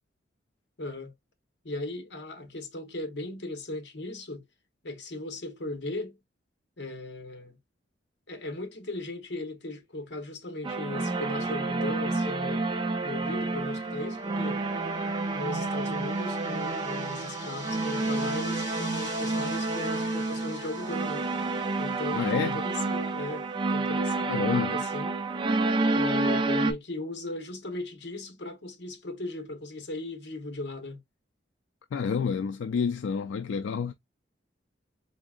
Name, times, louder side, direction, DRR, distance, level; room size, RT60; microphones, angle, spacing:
voice 1, 0.8-1.1 1.6-4.4 4.8-6.2 6.8-7.6 8.3-12.6 13.0-14.6 15.3-21.3 21.8-25.2 25.9-31.0, left 2 dB, 70° left, 1.0 m, -37 dB
sound 1, 10.6-26.7, right 3 dB, 25° right, 0.4 m, -29 dB
sound 2, 13.3-23.1, left 2 dB, 15° left, 2.9 m, -47 dB
voice 2, 22.1-22.6 24.3-24.8 31.9-33.9, left 6 dB, 90° left, 0.3 m, -29 dB
3.8 x 3.5 x 2.4 m
head